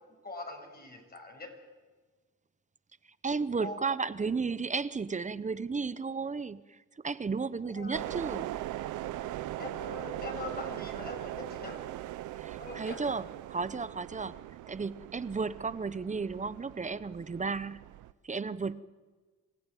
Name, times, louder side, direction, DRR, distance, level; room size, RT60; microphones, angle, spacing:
voice 1, 0.0-1.5 3.5-3.8 7.6-8.0 9.6-11.8 12.6-13.0, left 3 dB, 30° left, 2 dB, 6.7 m, -43 dB
voice 2, 3.2-6.8 7.0-8.5 12.4-14.4 14.7-17.8 18.2-18.8, right 4 dB, 25° right, 15 dB, 0.9 m, -33 dB
sound 1, 7.9-18.1, right 14 dB, 85° right, 0.8 m, -40 dB
26.5 x 16.5 x 9.2 m, 1.4 s
cardioid pair, 90°, 30 cm